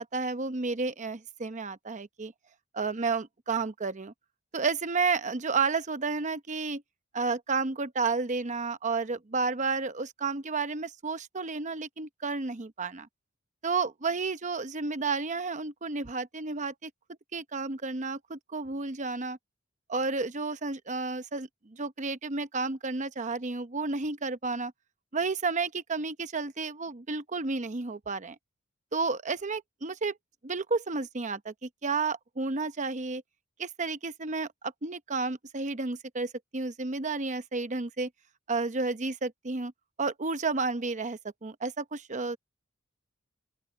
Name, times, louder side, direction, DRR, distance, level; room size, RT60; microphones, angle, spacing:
voice 1, 0.0-2.3 2.7-4.1 4.5-6.8 7.1-13.1 13.6-16.9 17.3-19.4 19.9-24.7 25.1-28.4 28.9-30.2 30.4-33.2 33.6-34.5 34.8-38.1 38.5-39.7 40.0-42.4, right 4 dB, 40° right, 0.9 m, -31 dB
open air
head